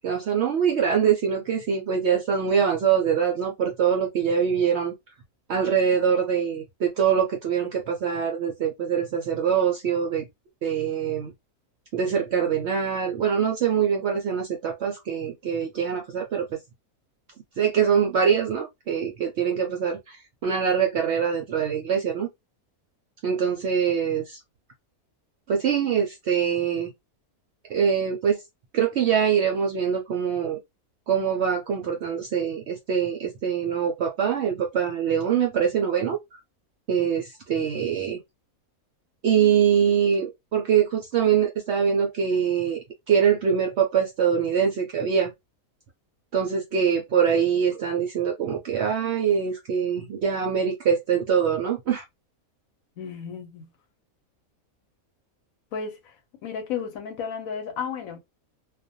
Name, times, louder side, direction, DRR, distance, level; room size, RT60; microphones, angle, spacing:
voice 1, 0.0-4.9 5.5-10.3 10.6-11.3 11.9-16.5 17.6-20.2 20.4-22.3 23.2-24.4 25.5-26.9 27.7-28.4 28.7-30.6 31.1-36.2 36.9-38.2 39.2-45.3 46.3-52.0, right 7 dB, 70° right, 0.6 m, -24 dB
voice 2, 53.0-53.7 55.7-56.1 56.4-58.2, left 6 dB, 70° left, 1.0 m, -33 dB
2.4 x 2.2 x 2.6 m
omnidirectional pair, 1.6 m